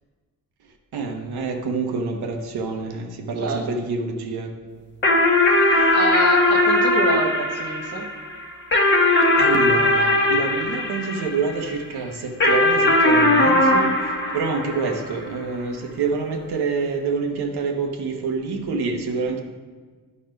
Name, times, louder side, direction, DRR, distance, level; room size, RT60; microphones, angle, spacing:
voice 1, 0.9-4.5 9.4-13.9 14.3-19.4, right 4 dB, 85° right, 3 dB, 1.1 m, -27 dB
sound 1, 5.0-11.7 12.4-15.2, left 2 dB, 30° left, 1.1 m, -19 dB
voice 2, 5.9-8.1, right 3 dB, 40° right, 2 dB, 1.0 m, -27 dB
10.5 x 4.2 x 5.3 m, 1.4 s
wide cardioid pair, 150°, 37 cm